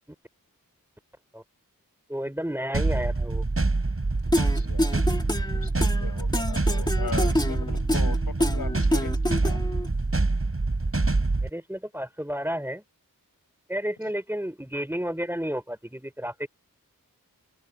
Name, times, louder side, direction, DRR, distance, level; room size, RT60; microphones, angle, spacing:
voice 1, 2.1-3.4 11.4-12.8 13.7-16.5, equal, 5° right, 5.4 m, -31 dB
sound 1, 2.7-11.5, right 3 dB, 40° right, 4.3 m, -25 dB
sound 2, 4.3-9.9, left 1 dB, 10° left, 2.5 m, -28 dB
voice 2, 4.5-5.0 5.5-9.6, left 5 dB, 85° left, 6.0 m, -39 dB
open air
wide cardioid pair, 70°, 35 cm